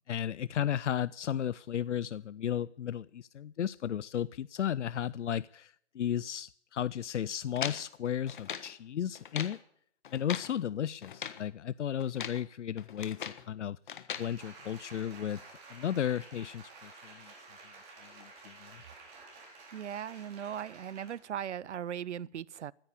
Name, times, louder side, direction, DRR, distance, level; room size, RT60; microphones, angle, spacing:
voice 1, 0.1-9.6 10.1-13.8 14.2-15.4 15.7-17.3 18.2-18.7, left 9 dB, 85° left, 0.5 m, -34 dB
sound 1, 7.6-8.7 9.1-9.6 10.0-10.5 11.0-11.4 12.0-12.4 12.8-13.5 13.9-14.3, left 8 dB, 45° left, 1.4 m, -40 dB
Applause, 14.2-21.3 21.7-21.8, right 3 dB, 20° right, 3.9 m, -52 dB
voice 2, 19.7-22.7, right 9 dB, 80° right, 0.6 m, -38 dB
15.0 x 9.7 x 8.4 m
hypercardioid pair, 155°, 35 cm